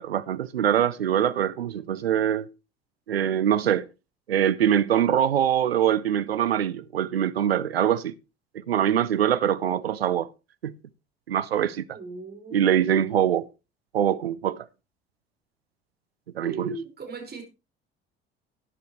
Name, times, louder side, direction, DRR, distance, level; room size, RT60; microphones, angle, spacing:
voice 1, 0.0-2.5 3.1-3.8 4.3-8.1 8.5-10.3 10.6-10.7 11.3-11.8 12.5-13.5 13.9-14.7 16.3-16.7, right 10 dB, 85° right, 0.6 m, -23 dB
voice 2, 11.9-13.0 16.4-17.4, right 3 dB, 35° right, 5.1 m, -38 dB
14.0 x 10.5 x 3.1 m
figure-of-eight pair, 60°, 30 cm